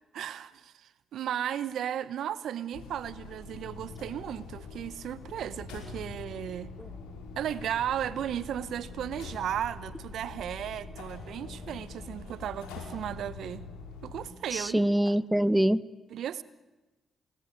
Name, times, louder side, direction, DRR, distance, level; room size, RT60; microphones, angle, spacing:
voice 1, 0.1-6.7 7.4-13.6 14.0-14.8 16.1-16.4, right 10 dB, 70° right, 17 dB, 1.0 m, -35 dB
sound 1, 2.7-14.3, left 4 dB, 85° left, 5.3 m, -45 dB
sound 2, 5.5-13.5, left 3 dB, 30° left, 5.0 m, -49 dB
voice 2, 14.5-15.8, right 1 dB, 5° right, 18 dB, 1.0 m, -25 dB
29.0 x 20.0 x 9.6 m, 1.1 s
hypercardioid pair, 45°, 0 cm